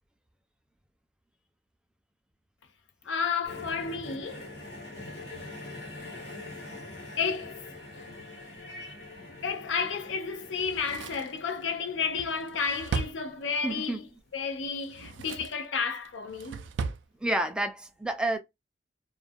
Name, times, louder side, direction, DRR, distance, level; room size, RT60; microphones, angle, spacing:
voice 1, 3.1-4.5 6.3-6.4 7.2-7.7 8.0-8.1 9.4-14.0 14.3-16.6, left 5 dB, 90° left, 0.5 m, -32 dB
sound 1, 3.4-13.6 14.5-14.7, left 2 dB, 65° left, 1.0 m, -44 dB
Drawer open or close, 10.6-13.9 14.7-15.7 16.0-17.1 17.4-17.5, right 5 dB, 80° right, 0.3 m, -37 dB
voice 2, 13.6-14.0 17.2-18.4, right 1 dB, 5° right, 0.4 m, -29 dB
2.3 x 2.2 x 2.5 m
head